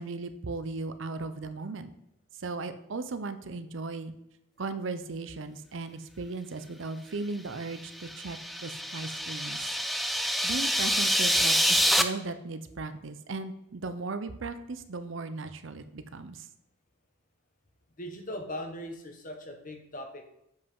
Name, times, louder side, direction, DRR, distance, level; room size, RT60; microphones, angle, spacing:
voice 1, 0.0-1.9 2.4-4.1 4.6-9.7 10.4-16.5, right 3 dB, 70° right, 10 dB, 0.6 m, -37 dB
sound 1, 7.9-12.0, equal, ahead, 0.4 m, -26 dB
voice 2, 18.0-20.2, left 1 dB, 40° left, 4 dB, 1.3 m, -39 dB
7.4 x 5.6 x 5.4 m, 0.82 s
head